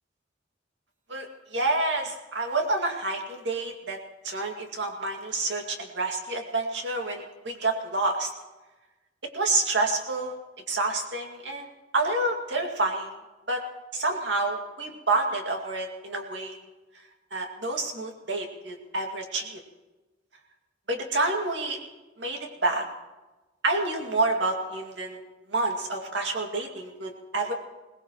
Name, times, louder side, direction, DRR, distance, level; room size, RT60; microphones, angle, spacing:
voice 1, 1.5-4.0 4.2-8.3 9.3-10.4 10.7-11.7 11.9-13.1 13.5-13.6 13.9-16.6 17.3-19.6 20.9-21.8 22.2-22.8 23.6-25.2 25.5-27.5, right 2 dB, 70° right, 2 dB, 2.3 m, -28 dB
22.5 x 18.5 x 3.1 m, 1.1 s
head